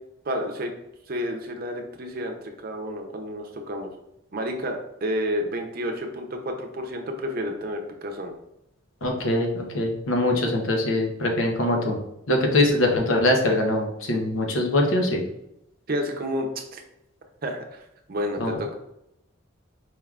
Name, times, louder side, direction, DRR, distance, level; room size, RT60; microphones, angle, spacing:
voice 1, 0.2-0.7 1.1-3.9 4.3-8.3 15.9-16.8 17.4-17.8 18.1-18.7, equal, 50° right, 3 dB, 0.6 m, -30 dB
voice 2, 9.0-12.0 12.3-15.2 18.4-18.6, left 1 dB, 90° left, 1 dB, 0.8 m, -23 dB
4.7 x 3.5 x 2.4 m, 0.83 s
head